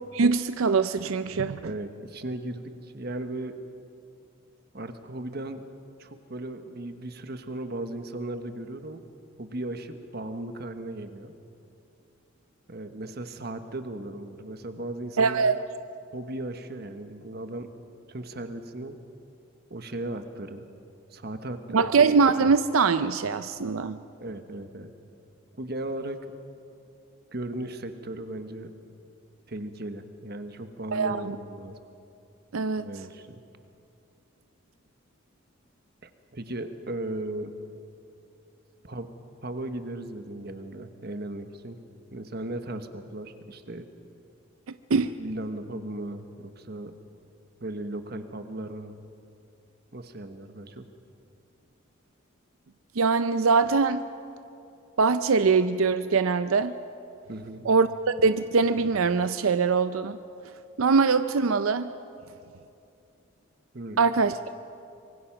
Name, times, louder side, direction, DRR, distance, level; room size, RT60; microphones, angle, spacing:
voice 1, 0.1-1.7 15.2-15.6 21.7-24.0 30.9-31.4 32.5-32.9 44.9-45.2 53.0-54.0 55.0-56.7 57.7-60.2 60.8-61.9 64.0-64.5, right 4 dB, 90° right, 12 dB, 0.5 m, -23 dB
voice 2, 1.6-3.6 4.7-5.6 6.0-9.0 9.4-11.3 12.7-15.6 16.1-17.7 18.1-19.0 19.7-20.7 21.1-21.9 24.2-24.9 25.6-26.2 27.3-28.7 29.5-31.8 32.8-33.4 36.0-37.5 38.8-39.1 39.4-41.8 42.1-43.9 45.2-46.9 47.6-49.0 49.9-50.9 57.3-57.7 63.7-64.0, right 1 dB, 50° right, 8 dB, 1.3 m, -36 dB
25.5 x 22.5 x 5.9 m, 2.7 s
head